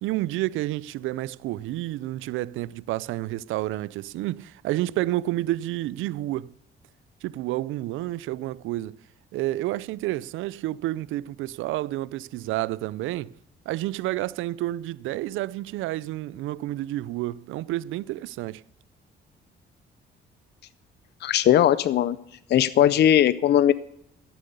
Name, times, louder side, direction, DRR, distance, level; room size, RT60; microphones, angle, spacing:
voice 1, 0.0-6.5 7.2-9.0 9.3-13.3 13.7-18.6, right 16 dB, 90° right, 0.4 m, -30 dB
voice 2, 21.2-22.2 22.5-23.7, left 11 dB, 60° left, 0.5 m, -19 dB
14.5 x 7.6 x 6.8 m
cardioid pair, 90°, 20 cm